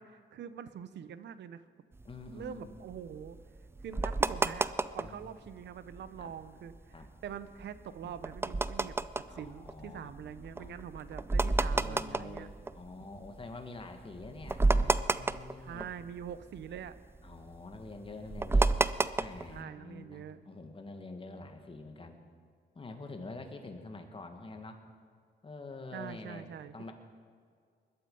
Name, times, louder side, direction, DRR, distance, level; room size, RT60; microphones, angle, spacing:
voice 1, 0.0-1.6 2.3-3.4 3.8-12.5 15.6-17.0 19.5-20.4 25.9-26.9, right 8 dB, 75° right, 13 dB, 0.9 m, -44 dB
voice 2, 2.0-2.7 5.0-5.2 6.2-6.3 6.9-7.1 9.3-10.7 11.7-15.9 17.2-18.7 19.2-22.2 22.7-24.8 25.4-26.9, left 3 dB, 30° left, 5 dB, 1.9 m, -46 dB
sound 1, 2.0-5.2 5.6-5.7 5.9-6.2 6.7-13.4 13.8-13.9 14.2-16.3 16.6-19.6, right 2 dB, 15° right, 0.4 m, -31 dB
20.5 x 12.0 x 5.5 m, 2.1 s
cardioid pair, 100°, 18 cm